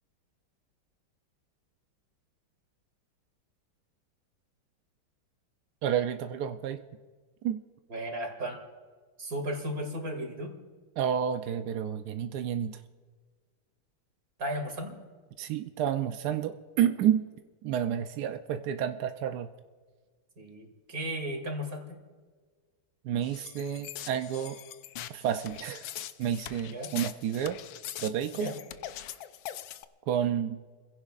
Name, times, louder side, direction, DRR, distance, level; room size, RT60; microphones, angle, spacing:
voice 1, 5.8-6.8 7.4-7.6 11.0-12.8 15.4-17.2 17.6-19.5 23.0-24.6 25.1-25.8 26.2-27.6 28.0-28.5 30.1-30.6, right 9 dB, 75° right, 8 dB, 0.9 m, -30 dB
voice 2, 7.9-8.6 9.2-10.5 14.4-15.0 20.4-22.0 26.7-26.9 28.3-28.6, equal, 40° right, 3 dB, 2.8 m, -35 dB
sound 1, 23.2-29.9, left 11 dB, 75° left, 1.3 m, -42 dB
29.0 x 16.0 x 2.5 m, 1.5 s
omnidirectional pair, 2.3 m